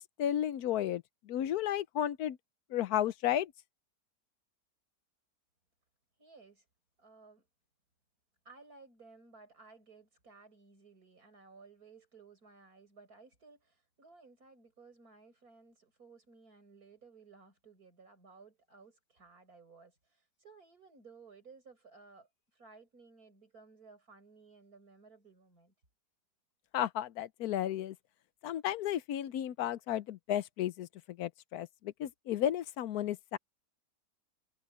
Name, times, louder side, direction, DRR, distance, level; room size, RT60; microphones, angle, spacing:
voice 1, 0.2-2.4 2.7-3.5 26.7-27.9 28.4-30.9 31.2-33.4, left 11 dB, 70° left, 1.1 m, -33 dB
voice 2, 6.2-6.7 7.0-7.5 8.4-25.7, right 4 dB, 55° right, 6.6 m, -58 dB
omnidirectional pair, 1.8 m